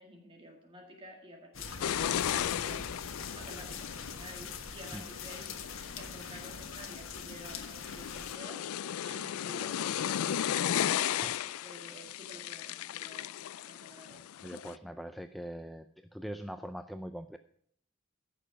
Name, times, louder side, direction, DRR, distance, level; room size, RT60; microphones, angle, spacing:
voice 1, 0.0-5.6 6.0-8.7 9.0-11.2 11.6-14.2, equal, 25° right, 2 dB, 1.9 m, -51 dB
sound 1, 1.5-8.4, left 5 dB, 70° left, 1.5 m, -43 dB
sound 2, 1.8-14.8, left 10 dB, 85° left, 0.4 m, -36 dB
voice 2, 14.4-15.9 16.1-17.4, equal, ahead, 8 dB, 0.4 m, -42 dB
15.5 x 6.7 x 5.1 m, 0.64 s
head